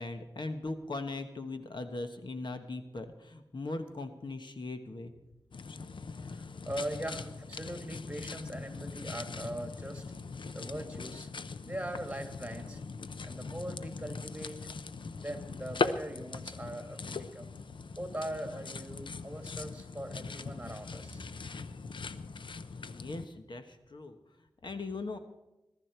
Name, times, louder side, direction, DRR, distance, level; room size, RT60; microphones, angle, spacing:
voice 1, 0.0-5.1 22.8-24.2 24.6-25.2, left 2 dB, 70° left, 7 dB, 1.2 m, -39 dB
sound 1, 5.5-23.3, left 4 dB, 90° left, 0.6 m, -40 dB
voice 2, 6.3-10.0 10.5-11.3 11.6-12.8 13.2-14.6 15.2-17.5 18.0-21.2, right 1 dB, 15° right, 5 dB, 2.3 m, -41 dB
21.5 x 12.0 x 4.5 m, 0.96 s
wide cardioid pair, 80°, 8 cm